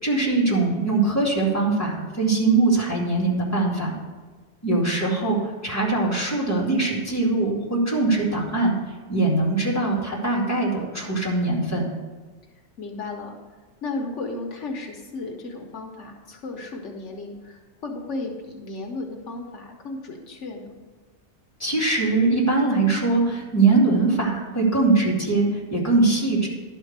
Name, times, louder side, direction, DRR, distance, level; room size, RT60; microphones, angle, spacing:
voice 1, 0.0-3.9 4.6-8.8 9.1-11.8 21.6-26.5, right 3 dB, 15° left, -4 dB, 2.3 m, -22 dB
voice 2, 12.8-13.4 13.8-20.8, left 3 dB, 80° left, 2 dB, 1.3 m, -34 dB
11.5 x 4.5 x 6.6 m, 1.4 s
omnidirectional pair, 1.2 m